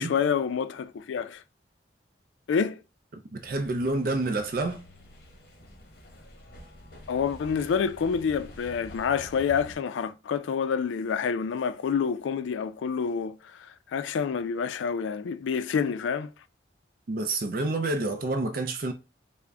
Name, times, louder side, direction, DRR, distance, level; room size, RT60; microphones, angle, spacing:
voice 1, 0.0-1.4 2.5-2.8 7.1-16.3, left 6 dB, 90° left, 0.3 m, -28 dB
voice 2, 3.3-4.8 17.1-18.9, right 2 dB, 50° right, 0.4 m, -28 dB
sound 1, 3.4-9.7, left 1 dB, 55° left, 0.9 m, -48 dB
3.6 x 2.1 x 3.3 m
head